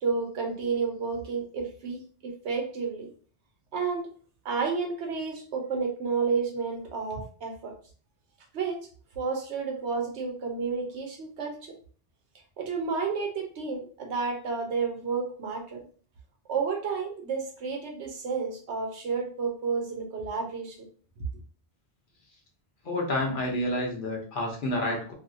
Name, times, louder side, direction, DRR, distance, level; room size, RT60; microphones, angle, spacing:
voice 1, 0.0-3.1 3.7-4.1 4.4-7.7 8.5-8.8 9.2-11.7 12.6-15.8 16.5-20.8, right 5 dB, 85° right, 3 dB, 1.0 m, -31 dB
voice 2, 22.8-25.1, left 1 dB, 55° left, 0 dB, 0.9 m, -29 dB
2.8 x 2.7 x 2.6 m, 0.43 s
omnidirectional pair, 1.1 m